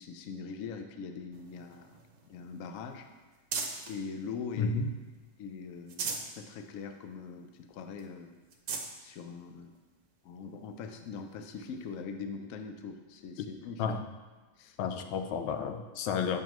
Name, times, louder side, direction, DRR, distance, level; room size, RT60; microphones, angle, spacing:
voice 1, 0.0-2.0 2.3-3.1 3.9-4.7 5.4-6.1 6.4-8.3 9.0-9.7 10.2-14.0 14.6-14.8, left 5 dB, 70° left, 7 dB, 0.8 m, -42 dB
sound 1, 1.3-4.0 4.5-5.3 5.7-6.4 6.8-6.9 7.3-7.4 8.0-8.1 8.4-8.9 9.7-9.8 11.6-11.7, right 5 dB, 65° right, 1.4 m, -39 dB
voice 2, 4.6-4.9 13.4-13.5 13.8-14.0 14.8-16.4, left 5 dB, 90° left, 7 dB, 1.4 m, -31 dB
8.6 x 6.9 x 3.0 m, 1.2 s
omnidirectional pair, 2.1 m